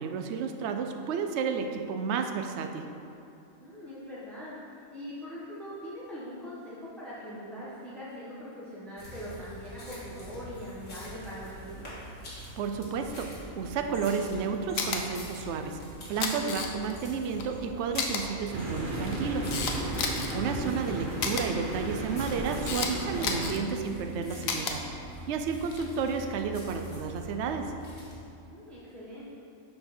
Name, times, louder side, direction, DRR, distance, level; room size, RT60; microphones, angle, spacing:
voice 1, 0.0-2.8 12.6-15.8 16.1-19.6 20.3-24.8 25.3-27.7, right 5 dB, 65° right, 5 dB, 0.8 m, -32 dB
voice 2, 3.6-11.9 20.2-20.6 28.5-29.2, equal, ahead, -9 dB, 1.2 m, -42 dB
sound 1, 9.0-28.1, equal, 60° left, 2.3 m, -45 dB
Camera, 14.8-15.0 16.0-17.0 17.4-17.5 18.0-18.2 18.9-20.3 21.2-21.4 22.2-22.9 23.2-23.6 24.4-24.7 25.6-25.9, left 5 dB, 75° left, 1.2 m, -31 dB
sound 2, 18.5-23.5, right 2 dB, 40° right, 1.0 m, -34 dB
11.0 x 4.5 x 4.3 m, 2.6 s
omnidirectional pair, 1.4 m